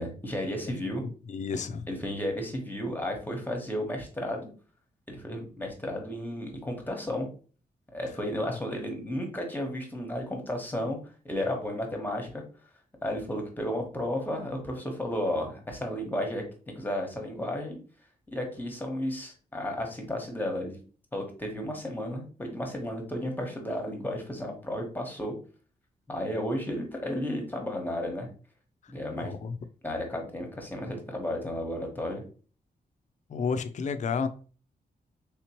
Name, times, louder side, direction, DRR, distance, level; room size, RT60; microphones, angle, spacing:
voice 1, 0.0-1.0 1.9-4.5 5.1-7.3 7.9-11.0 11.2-12.4 13.0-16.4 16.8-17.8 18.3-20.8 21.1-25.3 26.1-28.3 28.9-29.3 29.8-32.2, left 1 dB, 10° left, 1.0 m, -33 dB
voice 2, 1.0-1.8 29.1-29.5 33.3-34.3, left 5 dB, 50° left, 0.4 m, -31 dB
3.4 x 2.9 x 2.9 m
cardioid pair, 95°, 16 cm